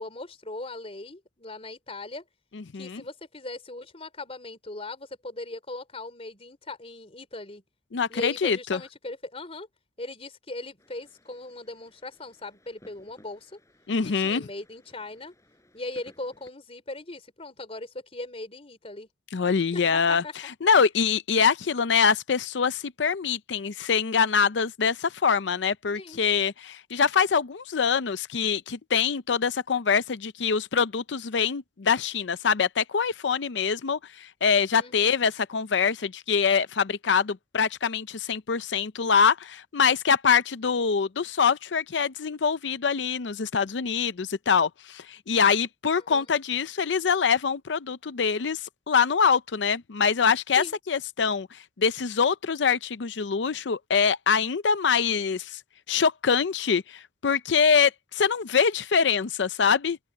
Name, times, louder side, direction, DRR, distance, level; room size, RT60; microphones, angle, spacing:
voice 1, 0.0-2.2 2.7-7.6 8.1-9.7 10.0-13.6 14.2-15.3 15.7-19.1 19.7-20.3 25.9-26.2 34.7-35.1 46.0-46.3 50.6-50.8, left 2 dB, 35° left, 3.6 m, -39 dB
voice 2, 2.5-3.0 7.9-8.8 13.9-14.4 19.3-20.2 20.6-55.6 55.9-60.0, left 6 dB, 85° left, 0.6 m, -24 dB
sound 1, 10.8-16.5, left 1 dB, 15° left, 7.9 m, -59 dB
open air
head